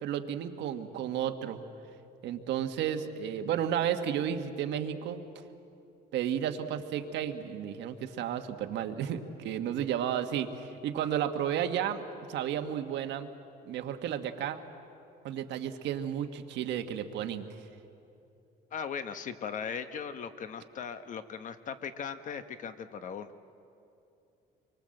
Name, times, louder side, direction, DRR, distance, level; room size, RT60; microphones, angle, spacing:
voice 1, 0.0-1.6 2.2-5.2 6.1-12.0 12.3-13.3 13.6-14.6 15.2-17.5, right 9 dB, 80° right, 7 dB, 1.5 m, -32 dB
voice 2, 18.7-23.3, left 7 dB, 45° left, 10 dB, 1.1 m, -38 dB
26.5 x 23.5 x 7.8 m, 2.7 s
cardioid pair, 160°, 18 cm